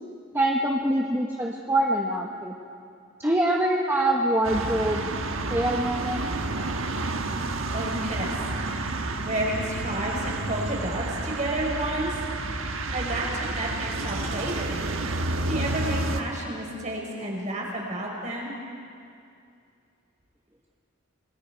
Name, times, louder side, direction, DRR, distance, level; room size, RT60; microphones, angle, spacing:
voice 1, 0.3-2.5 3.2-5.1 5.5-6.3, right 1 dB, 10° right, -1 dB, 1.1 m, -24 dB
sound 1, 4.4-16.2, right 2 dB, 75° right, 1.3 m, -30 dB
voice 2, 7.7-8.3 8.6-8.9 9.2-12.5 12.9-14.8 15.2-18.5, right 1 dB, 35° right, -2 dB, 4.7 m, -31 dB
28.0 x 20.5 x 4.6 m, 2.4 s
head